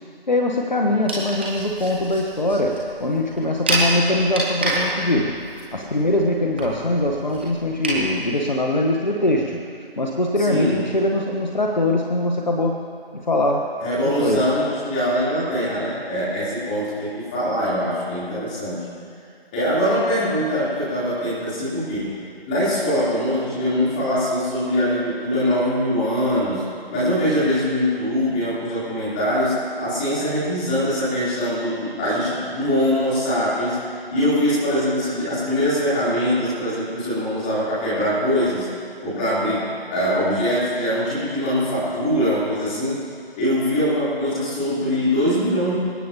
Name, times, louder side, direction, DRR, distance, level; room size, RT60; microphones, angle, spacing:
voice 1, 0.3-9.6 10.0-12.8 13.1-13.7 14.0-14.5, left 1 dB, 45° left, 1 dB, 1.3 m, -22 dB
sound 1, 1.1-8.0, right 1 dB, 10° right, 1.2 m, -28 dB
voice 2, 10.5-10.8 13.8-18.8 19.5-38.7 39.0-43.0 43.3-45.7, equal, 10° left, -11 dB, 3.8 m, -22 dB
26.5 x 17.0 x 3.0 m, 2.3 s
figure-of-eight pair, 160°, 30 cm